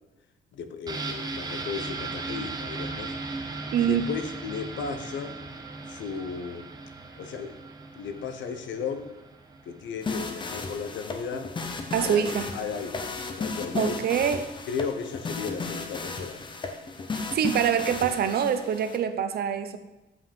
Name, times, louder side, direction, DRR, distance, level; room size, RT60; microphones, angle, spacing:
voice 1, 0.5-3.1 3.8-5.4 5.9-6.7 7.2-7.5 8.0-9.1 9.7-11.5 12.0-14.0 14.7-16.4, left 6 dB, 80° left, 8 dB, 0.9 m, -35 dB
sound 1, 0.9-10.5 10.8-10.9, right 3 dB, 20° right, 0.9 m, -37 dB
voice 2, 3.7-4.0 11.9-12.5 13.7-14.5 17.3-19.8, right 8 dB, 55° right, 10 dB, 0.7 m, -25 dB
sound 2, 10.0-19.0, left 4 dB, 25° left, 0.7 m, -34 dB
8.1 x 5.3 x 5.2 m, 1.0 s
cardioid pair, 160°, 19 cm